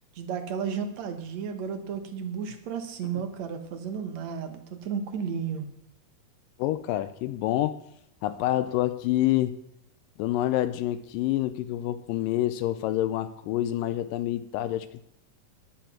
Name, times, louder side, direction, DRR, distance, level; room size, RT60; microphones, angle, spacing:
voice 1, 0.2-5.7, right 7 dB, 65° right, 7 dB, 2.2 m, -33 dB
voice 2, 6.6-7.8 8.2-9.6 10.2-15.1, left 14 dB, 90° left, 12 dB, 2.3 m, -27 dB
10.5 x 9.1 x 6.0 m, 0.81 s
omnidirectional pair, 3.9 m